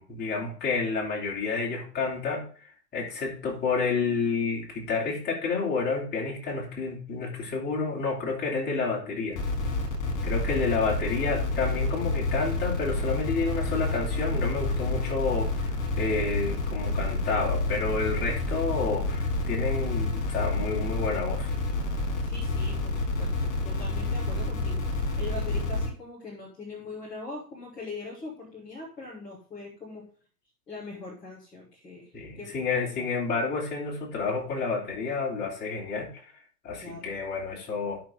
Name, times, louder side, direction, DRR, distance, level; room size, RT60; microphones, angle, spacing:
voice 1, 0.0-9.4 10.2-21.5 32.1-36.3 36.6-38.0, left 4 dB, 20° left, -3 dB, 3.4 m, -30 dB
sound 1, 9.3-25.9, left 2 dB, 40° left, 3.6 m, -29 dB
voice 2, 22.2-30.0 30.7-32.1 32.4-32.5 36.8-37.1, left 3 dB, 5° left, -9 dB, 0.4 m, -41 dB
11.0 x 6.1 x 3.6 m, 0.41 s
hypercardioid pair, 125°, 49 cm